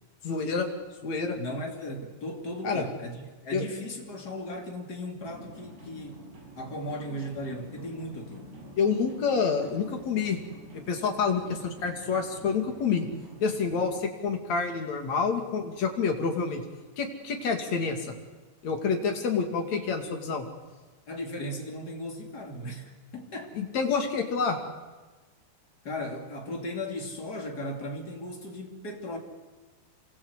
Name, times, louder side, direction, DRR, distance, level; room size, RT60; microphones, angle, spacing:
voice 1, 0.2-0.7 1.0-1.4 2.6-2.9 3.5-3.6 8.8-10.4 10.7-13.1 13.4-16.6 17.0-18.2 18.6-20.4 23.6-24.6, left 5 dB, 45° left, 3 dB, 3.4 m, -28 dB
voice 2, 1.4-6.2 6.6-8.5 21.1-23.7 25.8-29.2, left 1 dB, 25° left, 2 dB, 2.9 m, -37 dB
sound 1, 5.2-14.0, right 1 dB, 75° right, 8.9 m, -48 dB
27.0 x 24.0 x 8.3 m, 1.3 s
omnidirectional pair, 5.0 m